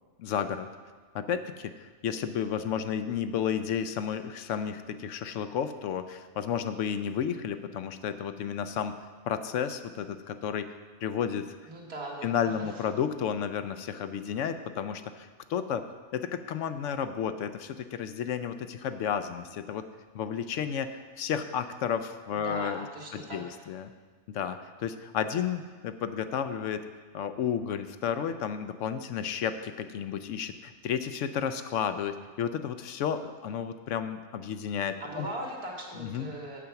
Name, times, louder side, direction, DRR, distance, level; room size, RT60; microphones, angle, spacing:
voice 1, 0.2-0.7 1.1-8.9 9.3-10.7 11.0-11.5 12.2-15.8 16.1-19.9 20.1-22.9 23.1-23.9 24.3-26.8 27.1-35.3 36.0-36.3, left 8 dB, 65° left, 10 dB, 0.8 m, -32 dB
voice 2, 11.6-12.8 22.3-23.6 35.0-36.6, right 1 dB, 75° right, -3 dB, 2.3 m, -40 dB
8.6 x 8.0 x 5.8 m, 1.4 s
omnidirectional pair, 1.6 m